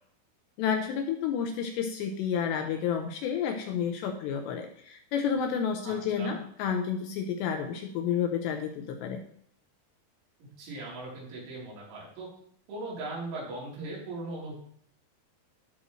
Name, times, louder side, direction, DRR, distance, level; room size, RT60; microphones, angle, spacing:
voice 1, 0.6-9.2, left 7 dB, 80° left, 4 dB, 2.6 m, -30 dB
voice 2, 5.9-6.4 10.6-12.3 12.7-14.6, right 2 dB, 75° right, -5 dB, 5.9 m, -39 dB
15.0 x 6.3 x 3.1 m, 0.65 s
omnidirectional pair, 5.6 m